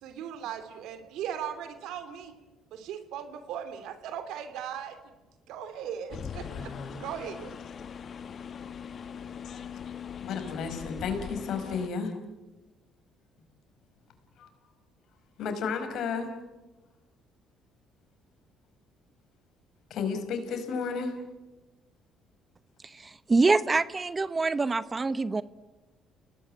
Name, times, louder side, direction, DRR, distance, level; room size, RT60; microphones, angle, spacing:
voice 1, 0.0-2.4 2.7-5.0 5.5-7.6, right 9 dB, 75° right, 9 dB, 2.9 m, -38 dB
sound 1, 6.1-11.9, left 7 dB, 50° left, 1.5 m, -41 dB
voice 2, 6.4-7.0 9.4-9.6 10.2-12.1 14.4-14.5 15.4-16.3 19.9-21.1, left 5 dB, 70° left, 7 dB, 5.3 m, -33 dB
voice 3, 22.9-25.4, right 3 dB, 30° right, 15 dB, 1.0 m, -25 dB
30.0 x 18.5 x 8.9 m, 1.1 s
supercardioid pair, 65°, 0 cm